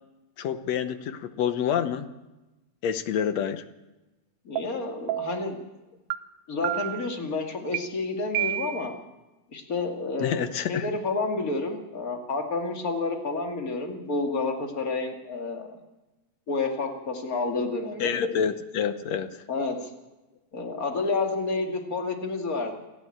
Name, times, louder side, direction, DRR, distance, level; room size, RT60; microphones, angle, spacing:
voice 1, 0.4-2.1 2.8-3.6 10.2-10.9 18.0-19.4, left 8 dB, 70° left, 11 dB, 1.9 m, -28 dB
voice 2, 4.4-5.6 6.5-8.9 9.5-15.8 16.5-18.1 19.5-19.9 20.5-22.7, left 3 dB, 30° left, 2 dB, 2.4 m, -30 dB
sound 1, 4.6-4.7 5.1-5.5 6.1-6.2 6.6-7.1 7.7-7.8 8.3-9.0, right 13 dB, 70° right, 2.0 m, -29 dB
29.5 x 11.0 x 8.7 m, 1.1 s
omnidirectional pair, 3.5 m